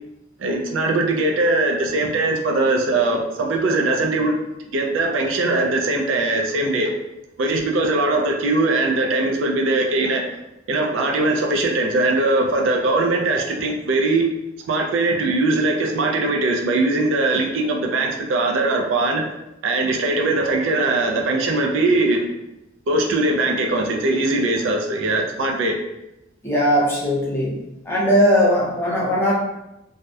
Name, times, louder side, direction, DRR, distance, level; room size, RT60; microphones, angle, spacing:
voice 1, 0.4-4.3 4.7-6.9 7.4-10.3 10.7-14.3 14.7-19.2 19.6-22.3 22.9-25.7, right 2 dB, 80° right, 2 dB, 0.4 m, -20 dB
voice 2, 26.4-27.6 27.8-29.3, equal, 15° left, -6 dB, 0.7 m, -19 dB
2.7 x 2.1 x 2.2 m, 0.91 s
head